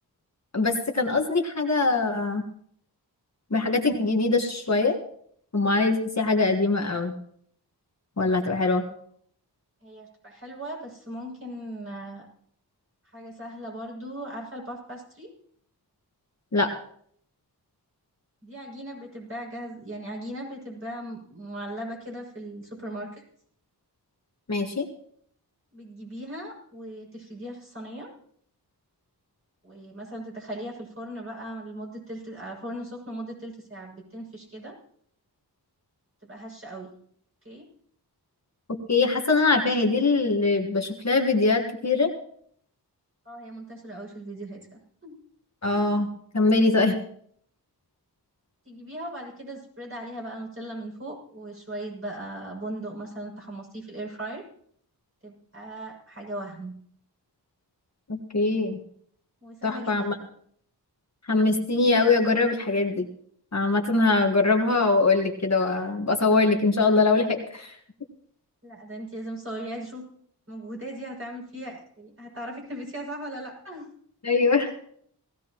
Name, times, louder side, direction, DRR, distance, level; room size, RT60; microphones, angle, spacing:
voice 1, 0.5-2.4 3.5-5.0 5.5-7.1 8.2-8.8 16.5-16.7 24.5-24.8 38.9-42.1 45.6-46.1 46.3-46.9 58.1-58.8 59.6-60.2 61.3-63.1 63.5-67.7 74.2-74.8, left 3 dB, 40° left, 2 dB, 1.6 m, -22 dB
voice 2, 9.8-12.3 13.0-15.3 18.4-23.1 25.7-28.1 29.6-34.8 36.2-36.9 37.4-37.7 43.2-45.2 48.6-54.4 55.2-56.7 59.4-60.2 68.6-70.0 70.5-73.9, right 1 dB, 35° right, -2 dB, 6.6 m, -38 dB
18.5 x 16.0 x 3.0 m, 0.63 s
wide cardioid pair, 90°, 40 cm